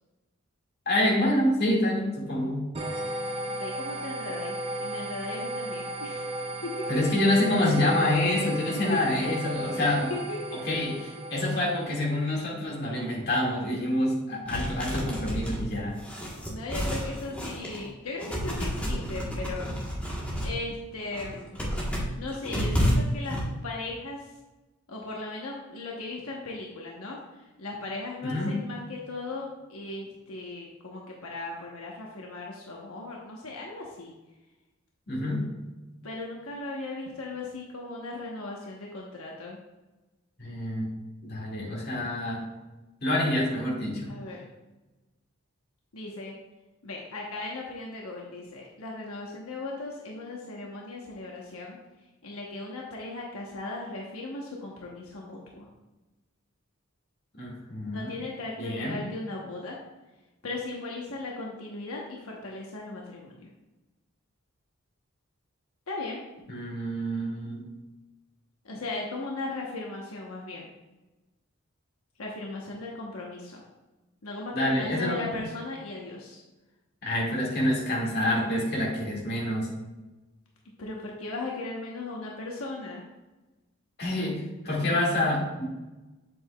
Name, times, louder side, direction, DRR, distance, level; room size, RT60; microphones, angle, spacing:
voice 1, 0.9-2.7 6.9-10.1 10.7-16.0 28.2-28.6 35.1-35.5 40.4-41.0 41.2-42.4 43.0-44.1 57.3-58.1 58.6-59.1 66.5-67.7 74.5-75.4 77.0-79.7 84.0-85.7, left 1 dB, 45° left, -3 dB, 2.1 m, -27 dB
sound 1, 2.7-12.1, right 1 dB, 25° right, 0.6 m, -35 dB
voice 2, 3.5-6.7 9.7-10.8 16.4-19.7 20.4-21.6 22.1-23.4 23.6-24.2 24.9-34.1 36.0-39.6 44.1-44.4 45.9-46.3 46.8-51.8 52.2-55.7 57.9-59.8 60.4-63.5 65.9-66.2 68.6-70.7 72.2-73.6 74.2-76.4 80.8-83.0, left 2 dB, 85° left, -2 dB, 1.1 m, -37 dB
sound 2, 14.5-17.9 18.2-20.6 21.0-23.4, equal, 5° left, 1.3 m, -30 dB
7.8 x 7.5 x 2.3 m, 1.1 s
head